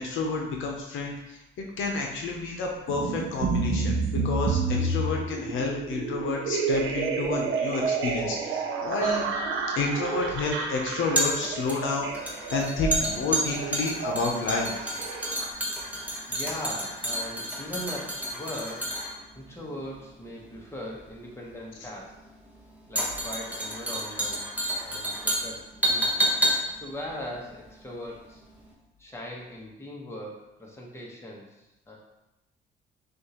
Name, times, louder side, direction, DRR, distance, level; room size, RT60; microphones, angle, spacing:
voice 1, 0.0-9.3 9.8-14.8, left 3 dB, 75° left, 0 dB, 0.8 m, -30 dB
sound 1, 2.9-15.5, right 4 dB, 85° right, 0.6 m, -30 dB
sound 2, 9.0-28.3 28.5-28.7, right 1 dB, 10° right, 1.0 m, -30 dB
voice 2, 16.3-22.2 22.9-24.4 24.8-26.3 26.7-28.4 29.0-32.0, left 1 dB, 15° left, -3 dB, 1.2 m, -40 dB
6.2 x 2.6 x 3.0 m, 0.94 s
cardioid pair, 90°, 20 cm